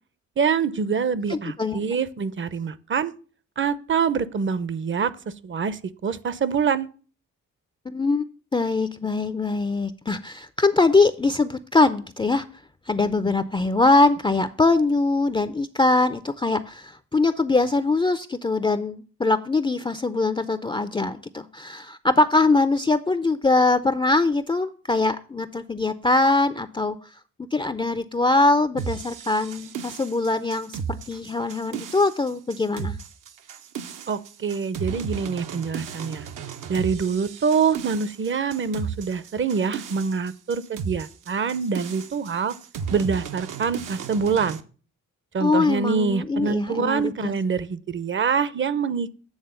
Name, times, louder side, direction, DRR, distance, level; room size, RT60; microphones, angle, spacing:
voice 1, 0.4-3.1 3.6-5.1 5.4-6.9 34.1-36.3 36.7-42.6 42.9-44.6 45.3-49.1, right 6 dB, 40° right, 0.6 m, -25 dB
voice 2, 1.3-1.8 7.9-12.4 12.9-27.0 27.5-33.0 45.4-47.3, left 3 dB, 15° left, 0.4 m, -22 dB
sound 1, 28.8-44.6, right 7 dB, 70° right, 0.8 m, -35 dB
8.8 x 3.6 x 6.8 m
cardioid pair, 75°, 32 cm